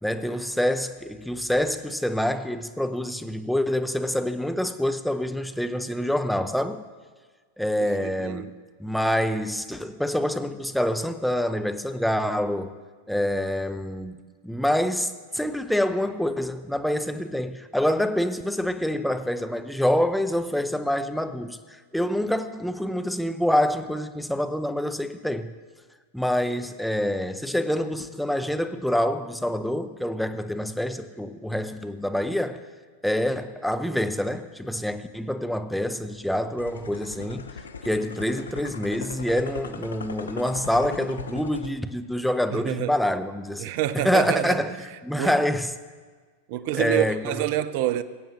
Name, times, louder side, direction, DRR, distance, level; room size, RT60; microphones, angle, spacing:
voice 1, 0.0-6.8 7.6-8.5 8.8-12.7 13.1-14.2 14.4-25.5 26.1-32.6 33.0-37.5 37.8-45.7 46.7-47.4, left 1 dB, ahead, 0.7 m, -26 dB
voice 2, 8.0-8.5 42.5-42.9 43.6-44.6 45.2-45.4 46.5-48.0, right 12 dB, 55° right, 0.6 m, -27 dB
sound 1, 36.6-41.7, left 5 dB, 80° left, 0.7 m, -39 dB
22.0 x 8.7 x 3.0 m
figure-of-eight pair, 95°, 0 cm